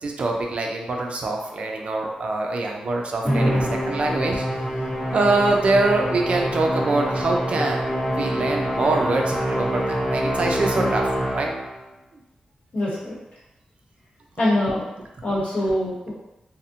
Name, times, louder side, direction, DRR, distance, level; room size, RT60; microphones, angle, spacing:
voice 1, 0.0-4.4 5.1-11.0 11.3-11.5, right 2 dB, 50° right, 1 dB, 0.3 m, -24 dB
Musical instrument, 3.2-11.8, equal, 5° right, 1.3 m, -25 dB
voice 2, 12.7-13.2 14.4-14.9 15.2-16.1, left 1 dB, 60° left, -6 dB, 1.0 m, -24 dB
2.6 x 2.0 x 2.7 m, 0.91 s
wide cardioid pair, 135°, 3 cm